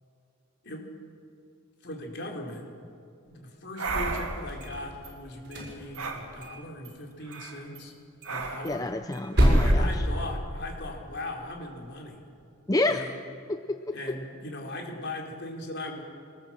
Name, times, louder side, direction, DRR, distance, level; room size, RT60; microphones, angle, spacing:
voice 1, 1.8-2.6 3.3-7.9 8.3-8.9 9.6-12.2 12.8-13.2 13.9-16.0, left 1 dB, 50° left, 1 dB, 3.9 m, -39 dB
sound 1, 3.8-4.5 6.0-6.2 7.2-7.6 8.2-8.8 9.4-9.7, right 3 dB, 75° right, 2.6 m, -34 dB
sound 2, 3.9-5.1 5.4-6.6 6.8-6.9 7.3-7.5 7.7-7.8 8.2-10.8, equal, 50° right, 6.4 m, -26 dB
voice 2, 8.6-10.0 12.7-13.1 13.5-13.9, left 2 dB, 15° left, 7 dB, 0.5 m, -29 dB
23.0 x 20.0 x 7.6 m, 2.7 s
head